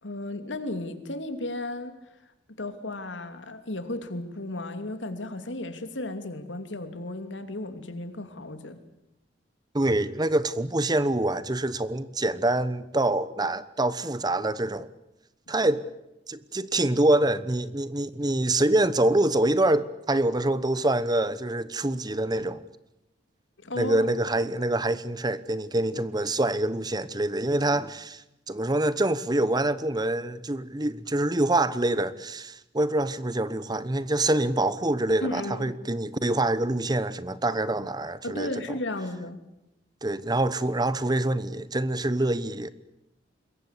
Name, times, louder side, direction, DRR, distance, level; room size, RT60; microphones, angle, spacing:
voice 1, 0.0-2.0 2.6-8.8 23.6-24.0 35.2-35.7 38.2-39.4, left 1 dB, 90° left, 2.8 m, -34 dB
voice 2, 9.7-14.9 15.5-15.8 16.3-22.6 23.8-38.5 40.0-42.7, right 1 dB, 20° right, 1.0 m, -25 dB
26.5 x 22.0 x 8.3 m
head